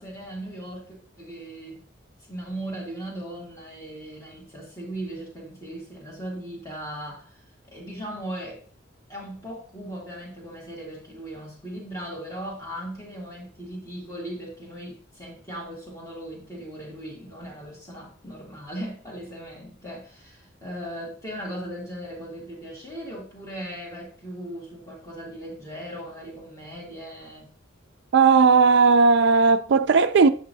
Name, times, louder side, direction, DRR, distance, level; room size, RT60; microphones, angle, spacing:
voice 1, 0.0-1.8 2.3-8.6 9.1-27.5, right 1 dB, 15° left, 1.9 m, -38 dB
voice 2, 28.1-30.3, right 4 dB, 60° right, 0.4 m, -16 dB
7.8 x 5.5 x 2.7 m
head